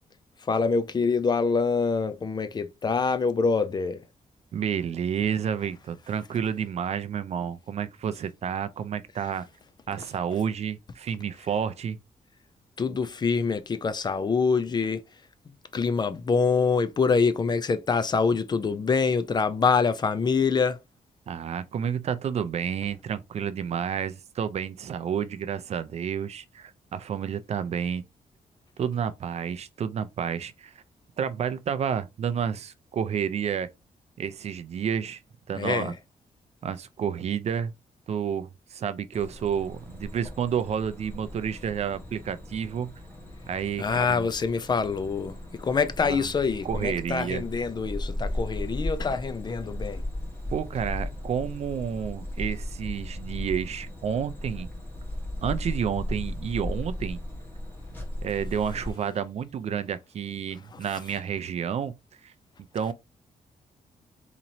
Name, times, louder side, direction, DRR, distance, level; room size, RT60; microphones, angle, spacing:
voice 1, 0.4-4.0 12.8-15.1 15.7-20.8 35.5-35.9 43.8-50.0 60.7-60.8, left 5 dB, 30° left, 0.4 m, -25 dB
voice 2, 4.5-9.5 9.9-12.0 21.3-28.0 28.8-30.8 31.2-33.7 34.2-35.2 35.5-35.9 36.6-37.7 38.1-42.9 43.5-44.3 46.0-46.3 46.6-47.4 50.5-54.7 55.4-57.2 58.2-62.0 62.2-62.3 62.7-62.9, right 8 dB, 50° right, 0.4 m, -30 dB
sound 1, 39.1-58.9, left 1 dB, 15° left, 1.4 m, -36 dB
4.1 x 2.9 x 2.6 m
wide cardioid pair, 145°, 14 cm